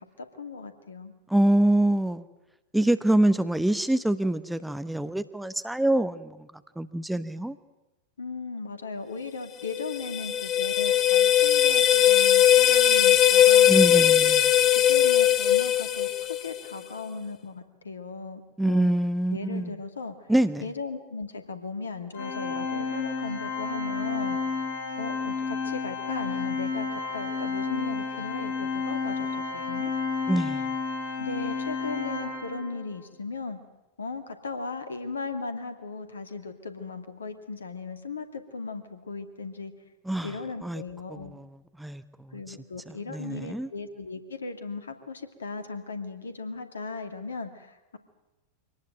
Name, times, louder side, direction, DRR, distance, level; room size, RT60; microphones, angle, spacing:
voice 1, 0.0-1.1 8.2-13.7 14.7-18.9 19.3-20.3 20.6-24.4 25.0-29.9 31.2-33.6 34.0-39.7 40.2-41.3 42.3-48.0, left 4 dB, 70° left, 8 dB, 2.3 m, -37 dB
voice 2, 1.3-2.3 2.7-6.5 6.8-7.6 13.7-14.5 18.6-19.7 20.3-20.7 30.3-30.7 40.1-40.3 40.6-40.8 41.1-41.5 41.8-42.6 42.9-43.7, right 1 dB, 5° right, 12 dB, 0.9 m, -25 dB
sound 1, 9.6-16.7, left 11 dB, 30° left, 1.4 m, -20 dB
Organ, 22.1-32.9, left 4 dB, 50° left, 4.2 m, -31 dB
24.5 x 18.5 x 9.1 m, 1.0 s
figure-of-eight pair, 90°, 0 cm